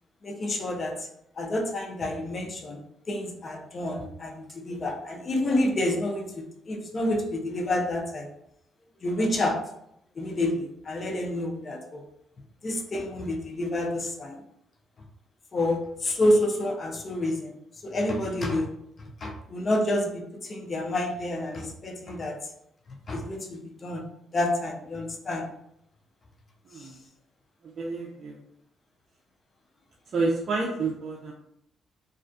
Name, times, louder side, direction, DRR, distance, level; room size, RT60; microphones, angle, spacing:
voice 1, 0.2-1.1 1.4-8.3 9.0-9.6 10.2-12.0 12.6-14.4 15.5-17.6 17.8-18.8 19.2-22.4 23.1-24.0 24.3-25.5 26.8-26.9, left 1 dB, 40° left, 2 dB, 0.5 m, -28 dB
voice 2, 27.6-28.4 30.1-31.3, right 3 dB, 50° right, -2 dB, 0.4 m, -29 dB
2.3 x 2.2 x 2.5 m, 0.75 s
cardioid pair, 90°, 0 cm